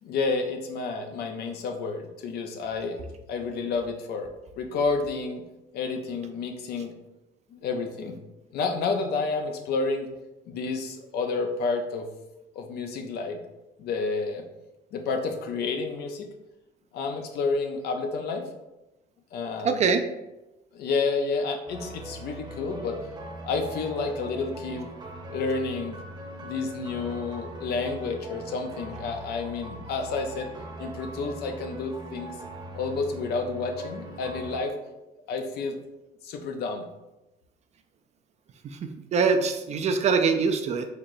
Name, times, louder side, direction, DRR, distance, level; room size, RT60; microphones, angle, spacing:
voice 1, 0.0-3.0 3.3-4.3 4.6-5.4 5.7-6.9 7.5-8.2 8.5-10.1 10.5-12.1 12.6-13.4 13.8-14.4 14.9-16.3 16.9-18.4 19.3-19.8 20.7-23.0 23.4-24.9 25.3-26.0 26.4-30.5 30.8-32.4 32.7-34.7 35.3-35.8 36.2-36.9, left 4 dB, 70° left, 4 dB, 0.6 m, -30 dB
voice 2, 19.6-20.0 38.6-40.9, right 5 dB, 40° right, 7 dB, 0.4 m, -24 dB
sound 1, 21.7-34.6, right 1 dB, 25° right, 0.8 m, -41 dB
4.2 x 3.1 x 2.6 m, 0.98 s
cardioid pair, 110°, 17 cm